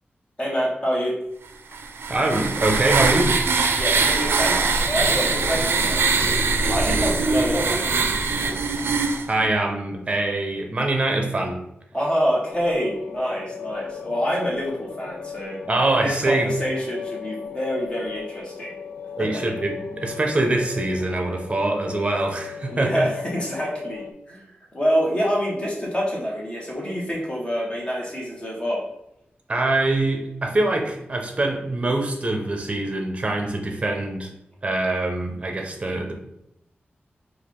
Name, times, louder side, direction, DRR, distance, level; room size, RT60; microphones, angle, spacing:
voice 1, 0.4-1.1 3.8-6.3 6.7-8.6 11.9-15.6 16.0-18.7 19.2-19.3 22.7-28.8, equal, 25° left, -4 dB, 1.2 m, -26 dB
sound 1, 1.7-9.3, right 4 dB, 85° right, 0.4 m, -22 dB
voice 2, 2.1-3.3 9.3-11.6 15.6-16.5 19.2-23.1 29.5-34.3 34.6-36.1, right 2 dB, 30° right, 3 dB, 0.7 m, -24 dB
sound 2, 12.5-24.1, left 6 dB, 60° left, 0.4 m, -37 dB
4.6 x 2.5 x 3.7 m, 0.81 s
wide cardioid pair, 125°, 4 cm